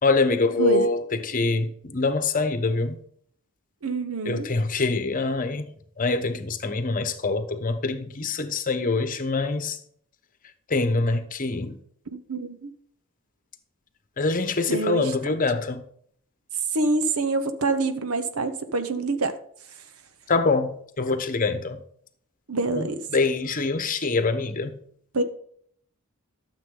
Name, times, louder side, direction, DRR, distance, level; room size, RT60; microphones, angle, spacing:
voice 1, 0.0-3.0 4.2-5.7 6.0-9.8 10.7-11.8 14.2-15.8 20.3-21.8 22.7-24.8, left 3 dB, 40° left, 1.0 m, -25 dB
voice 2, 3.8-4.5 12.1-12.7 14.7-15.1 16.7-19.4 22.5-23.0 25.1-25.2, right 3 dB, 85° right, 1.0 m, -26 dB
12.5 x 7.2 x 3.9 m
head